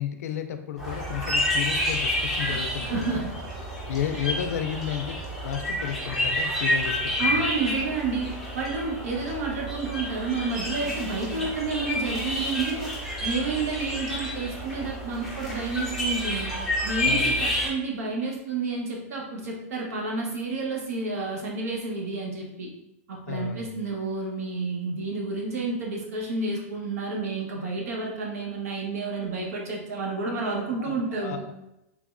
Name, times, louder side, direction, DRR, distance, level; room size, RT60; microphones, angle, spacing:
voice 1, 0.0-3.1 3.9-5.2 5.4-7.5 17.1-17.5 23.3-23.8 30.8-31.5, left 9 dB, 90° left, 8 dB, 0.4 m, -32 dB
sound 1, 0.8-17.7, equal, ahead, 0.6 m, -29 dB
voice 2, 2.5-3.4 4.1-4.3 7.2-12.9 13.2-16.5 16.8-22.7 23.1-31.4, right 3 dB, 85° right, -1 dB, 0.9 m, -30 dB
3.4 x 3.0 x 2.4 m, 0.88 s
supercardioid pair, 170°, 8 cm